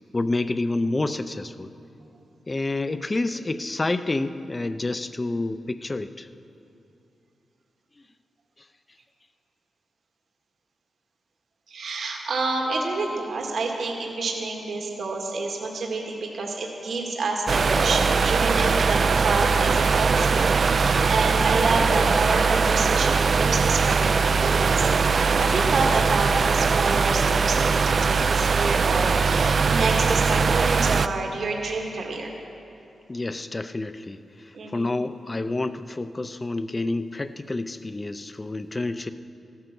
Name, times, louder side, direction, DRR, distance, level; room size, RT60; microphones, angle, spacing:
voice 1, 0.1-1.7 2.5-6.3 33.1-39.1, left 2 dB, 20° left, 11 dB, 0.5 m, -28 dB
voice 2, 11.7-24.9 25.2-32.3 34.5-34.9, right 3 dB, 65° right, 0 dB, 1.9 m, -28 dB
sound 1, 17.5-31.1, right 5 dB, 45° right, 0.4 m, -21 dB
15.0 x 13.0 x 6.0 m, 2.8 s
wide cardioid pair, 150°, 0 cm